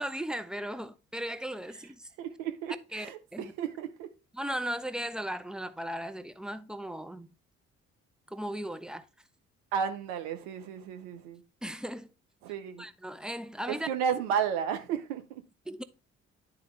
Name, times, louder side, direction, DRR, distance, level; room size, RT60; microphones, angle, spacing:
voice 1, 0.0-2.1 2.9-3.1 3.3-3.5 4.3-7.3 8.3-9.0 11.6-12.1 12.8-13.9 15.7-15.8, equal, ahead, 0.5 m, -36 dB
voice 2, 2.2-4.1 9.7-11.4 12.4-12.8 13.7-15.4, right 8 dB, 70° right, 0.7 m, -33 dB
10.5 x 3.6 x 3.2 m
figure-of-eight pair, 45°, 34 cm